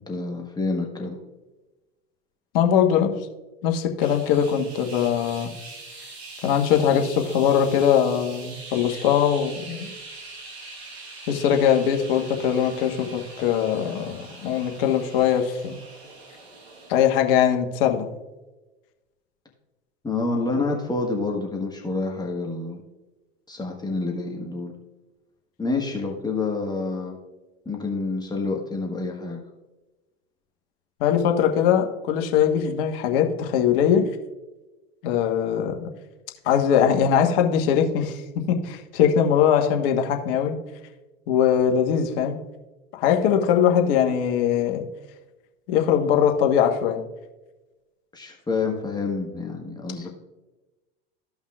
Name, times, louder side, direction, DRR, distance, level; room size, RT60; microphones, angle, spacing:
voice 1, 0.1-1.2 20.0-22.8 23.5-24.7 25.6-27.2 27.6-29.4 48.1-50.1, left 3 dB, 10° left, 0 dB, 1.4 m, -28 dB
voice 2, 2.5-3.1 3.6-5.5 6.4-9.9 11.3-15.8 16.9-18.1 31.0-34.1 35.0-35.9 36.4-38.2 38.5-40.6 41.3-42.4 42.9-44.9 45.7-47.0, left 8 dB, 60° left, 4 dB, 1.3 m, -21 dB
sound 1, 4.0-17.4, right 3 dB, 80° right, 1.5 m, -43 dB
15.0 x 5.6 x 2.4 m, 1.1 s
hypercardioid pair, 85°, 32 cm